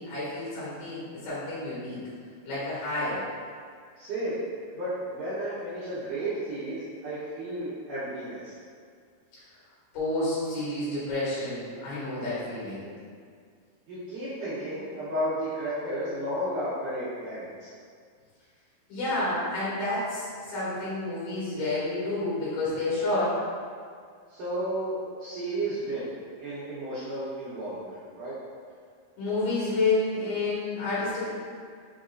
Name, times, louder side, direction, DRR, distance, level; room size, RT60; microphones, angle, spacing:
voice 1, 0.0-2.0 2.4-3.2 9.9-12.9 18.9-23.4 29.2-31.3, left 2 dB, 65° left, -11 dB, 3.3 m, -29 dB
voice 2, 4.0-4.4 4.7-8.5 13.9-17.7 24.3-26.1 26.4-28.3, right 1 dB, 70° right, -12 dB, 2.0 m, -33 dB
6.5 x 2.9 x 2.5 m, 2.1 s
omnidirectional pair, 4.6 m